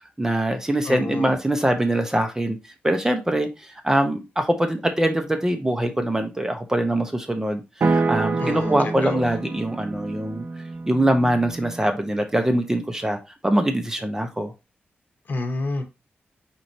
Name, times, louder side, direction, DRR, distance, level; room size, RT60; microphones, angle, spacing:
voice 1, 0.2-2.6 2.8-10.4 10.9-14.5, right 1 dB, 15° right, 0.7 m, -23 dB
voice 2, 0.8-1.4 8.4-9.3 15.3-15.8, left 3 dB, 50° left, 1.0 m, -28 dB
sound 1, 7.8-11.9, right 3 dB, 55° right, 0.6 m, -27 dB
4.5 x 4.1 x 2.6 m
cardioid pair, 90°, 4 cm